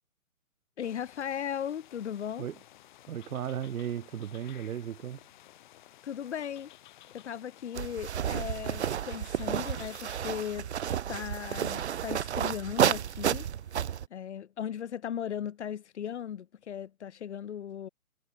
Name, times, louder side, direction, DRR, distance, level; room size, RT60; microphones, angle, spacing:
voice 1, 0.8-2.5 6.0-6.7 7.1-10.7 11.1-13.4 14.1-17.9, left 9 dB, 55° left, 0.9 m, -37 dB
sound 1, 0.8-10.6, left 13 dB, 35° left, 2.2 m, -55 dB
voice 2, 3.1-5.2, right 9 dB, 75° right, 0.7 m, -35 dB
sound 2, 7.8-14.1, right 9 dB, 50° right, 1.0 m, -31 dB
hypercardioid pair, 150°, 42 cm